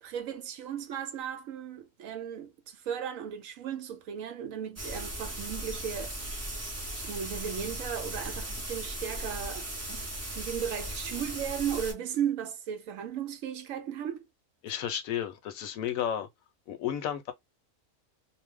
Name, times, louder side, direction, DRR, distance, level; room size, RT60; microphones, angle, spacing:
voice 1, 0.0-6.2 6.9-14.2, right 8 dB, 70° right, 0.9 m, -36 dB
sound 1, 4.8-11.9, right 1 dB, 20° right, 0.4 m, -37 dB
voice 2, 14.6-16.3 16.7-17.3, left 10 dB, 70° left, 1.0 m, -32 dB
2.6 x 2.1 x 3.4 m
omnidirectional pair, 1.5 m